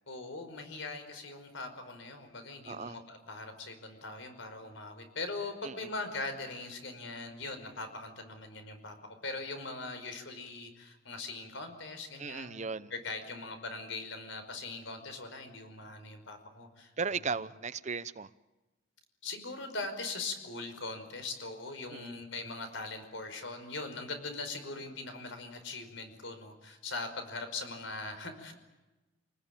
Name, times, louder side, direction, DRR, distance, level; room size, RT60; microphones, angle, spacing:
voice 1, 0.1-12.6 12.9-16.9 17.3-17.4 19.2-28.5, left 3 dB, 70° left, 5.3 m, -41 dB
voice 2, 2.7-3.0 5.6-5.9 12.2-12.9 17.0-18.3 21.9-22.2, right 5 dB, 35° right, 0.8 m, -36 dB
27.5 x 19.5 x 9.0 m
head